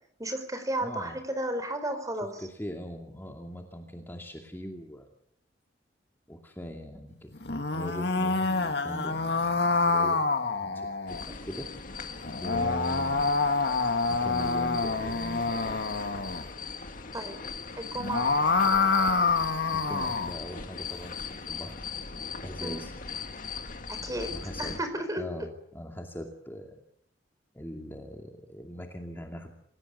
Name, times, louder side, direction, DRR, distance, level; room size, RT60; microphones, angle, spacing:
voice 1, 0.2-2.4 12.5-12.7 17.1-17.4 17.8-18.3 22.6-22.8 23.9-24.3 24.6-25.2, right 1 dB, 20° right, 9 dB, 4.6 m, -33 dB
voice 2, 0.8-1.2 2.4-5.1 6.3-7.3 7.7-10.3 10.6-10.9 11.2-11.7 12.4-13.3 14.1-15.8 19.7-21.8 22.4-22.9 24.3-24.8 25.2-26.8 27.5-29.5, equal, 10° left, 2 dB, 2.4 m, -40 dB
sound 1, 7.4-11.2 12.2-16.4 17.9-20.4, left 3 dB, 65° left, 2.1 m, -27 dB
sound 2, 11.1-24.8, left 5 dB, 45° left, 2.0 m, -40 dB
27.5 x 17.5 x 9.4 m, 0.71 s
head